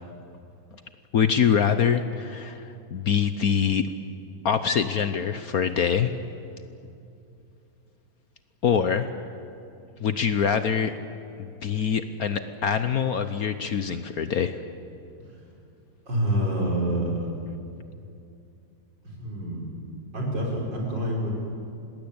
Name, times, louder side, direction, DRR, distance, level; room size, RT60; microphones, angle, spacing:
voice 1, 1.1-3.9 4.4-6.1 8.6-9.1 10.0-11.0 11.4-14.6, left 7 dB, 55° left, 10 dB, 1.2 m, -24 dB
voice 2, 16.1-17.3 19.0-19.7 20.1-21.4, right 1 dB, 65° right, -2 dB, 6.2 m, -27 dB
27.0 x 20.0 x 8.8 m, 2.6 s
omnidirectional pair, 2.1 m